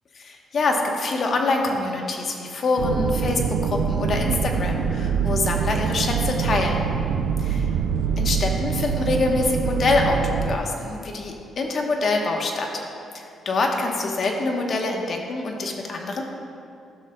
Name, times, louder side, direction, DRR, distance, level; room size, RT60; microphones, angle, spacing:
voice 1, 0.2-6.8 7.4-7.6 8.2-12.7 13.1-16.2, left 3 dB, 50° left, 2 dB, 1.0 m, -25 dB
sound 1, 2.8-10.6, right 6 dB, 85° right, 0.3 m, -24 dB
12.5 x 6.5 x 2.2 m, 2.6 s
cardioid pair, 90°, 0 cm